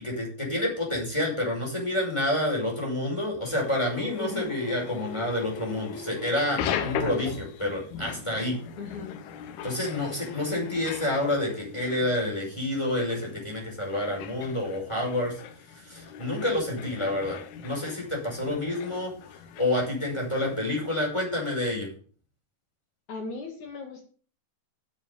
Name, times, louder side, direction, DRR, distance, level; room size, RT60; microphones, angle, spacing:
voice 1, 0.0-8.6 9.6-15.4 15.7-17.4 17.6-19.1 19.6-21.9, left 1 dB, 5° left, -1 dB, 5.4 m, -28 dB
sound 1, 3.4-20.9, left 8 dB, 85° left, 3.1 m, -39 dB
voice 2, 8.8-9.2 10.3-10.8 23.1-24.0, left 4 dB, 55° left, 3 dB, 3.2 m, -38 dB
10.0 x 7.7 x 7.0 m, 0.42 s
omnidirectional pair, 4.5 m